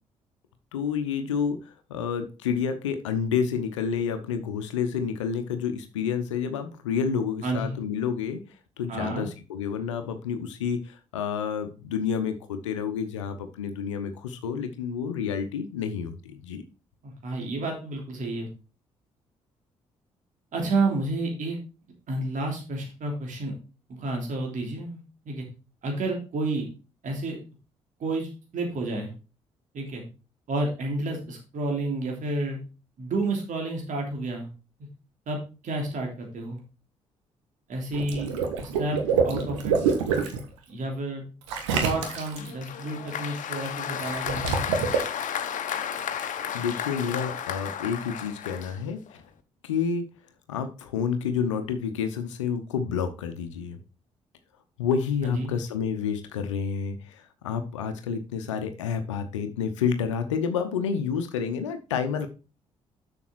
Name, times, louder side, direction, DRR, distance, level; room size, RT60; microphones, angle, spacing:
voice 1, 0.7-8.4 8.8-16.6 46.5-49.2 49.6-50.1 50.5-53.8 54.8-62.3, left 6 dB, 90° left, 8 dB, 0.8 m, -29 dB
voice 2, 7.4-7.7 8.9-9.3 17.0-18.5 20.5-21.6 22.1-23.5 23.9-25.0 25.2-25.4 25.8-26.7 27.0-27.4 28.0-29.1 29.7-30.0 30.5-32.6 33.0-34.5 35.3-35.4 35.6-36.6 37.7-38.3 38.6-39.0 39.2-39.8 40.7-41.2 41.7-44.6 55.2-55.5, right 2 dB, 55° right, 1 dB, 3.2 m, -30 dB
Water / Liquid, 37.9-40.4 41.5-42.5 44.0-45.0, right 6 dB, 85° right, 1.4 m, -26 dB
Applause, 42.0-49.2, left 8 dB, 55° left, 1.0 m, -33 dB
7.0 x 6.9 x 4.5 m, 0.32 s
hypercardioid pair, 45°, 15 cm